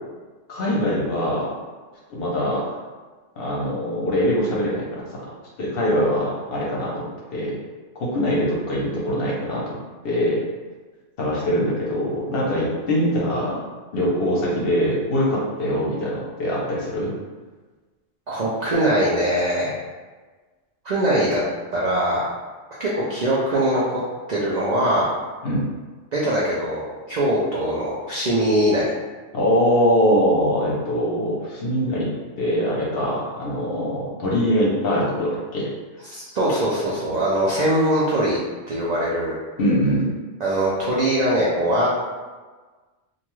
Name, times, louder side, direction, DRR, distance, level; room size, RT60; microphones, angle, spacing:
voice 1, 0.5-1.5 2.1-2.7 3.4-5.0 5.6-7.5 7.9-9.7 10.0-10.4 11.2-13.6 13.9-17.1 25.4-25.7 29.3-32.1 32.4-35.7 39.6-40.1, equal, 55° left, -5 dB, 0.8 m, -22 dB
voice 2, 18.3-19.8 20.8-21.4 21.7-22.3 22.8-24.0 24.3-25.1 26.1-28.9 36.1-38.4 38.7-39.3 40.4-41.9, right 1 dB, 65° right, -6 dB, 0.4 m, -22 dB
2.5 x 2.3 x 3.0 m, 1.3 s
omnidirectional pair, 1.3 m